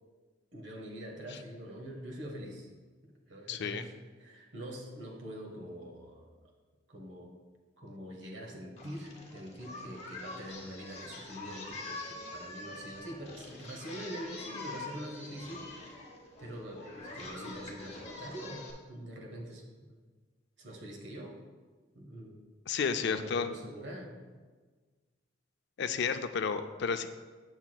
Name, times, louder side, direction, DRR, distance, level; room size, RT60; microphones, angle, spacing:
voice 1, 0.5-2.7 3.3-3.9 4.2-6.3 6.9-7.3 7.8-16.1 16.4-20.0 20.6-21.3 21.9-22.4 23.0-24.2, equal, 65° right, 1 dB, 1.2 m, -44 dB
voice 2, 3.5-3.8 22.7-23.5 25.8-27.1, left 6 dB, 60° left, 9 dB, 0.4 m, -31 dB
Singing, 8.8-18.7, left 2 dB, 35° left, 1.0 m, -45 dB
7.7 x 7.0 x 2.2 m, 1.4 s
head